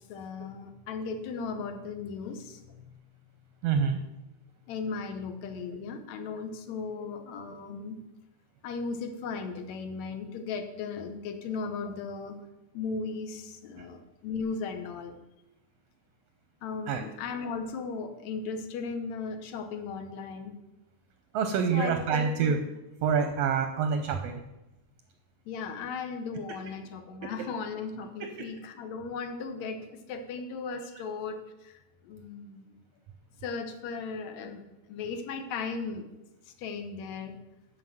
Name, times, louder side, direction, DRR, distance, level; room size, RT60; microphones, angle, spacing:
voice 1, 0.0-3.0 4.7-8.0 8.6-12.4 12.7-15.2 16.6-20.6 21.7-22.5 25.5-32.7 33.4-36.1 36.5-37.4, left 4 dB, 75° left, 7 dB, 2.0 m, -37 dB
voice 2, 3.6-4.0 16.9-17.0 21.3-22.6 23.0-24.4 28.2-28.3, right 6 dB, 75° right, 6 dB, 1.5 m, -26 dB
7.4 x 5.7 x 7.5 m, 0.98 s
omnidirectional pair, 3.4 m